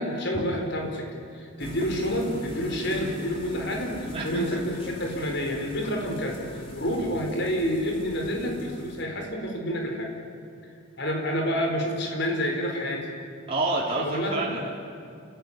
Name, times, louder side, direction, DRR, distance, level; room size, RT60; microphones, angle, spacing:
voice 1, 0.0-10.1 11.0-13.1 14.0-14.6, equal, 55° left, 2 dB, 4.5 m, -29 dB
sound 1, 1.6-9.0, equal, 25° left, 3.0 m, -39 dB
voice 2, 4.1-4.6 13.5-14.7, right 2 dB, 25° right, -5 dB, 3.2 m, -28 dB
29.0 x 14.5 x 9.9 m, 2.4 s
head